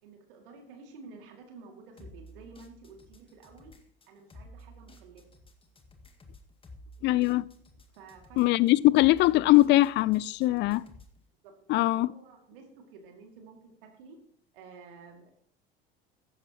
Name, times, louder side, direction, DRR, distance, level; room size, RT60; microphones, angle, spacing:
voice 1, 0.0-3.7 4.1-5.3 7.9-8.7 10.5-10.8 11.4-14.2 14.5-15.3, right 4 dB, 65° right, 2.5 m, -51 dB
sound 1, 2.0-11.2, equal, 20° left, 1.9 m, -52 dB
voice 2, 7.0-7.5 8.4-10.8 11.7-12.1, left 18 dB, 40° left, 0.5 m, -22 dB
15.5 x 12.5 x 3.0 m
figure-of-eight pair, 70°, 29 cm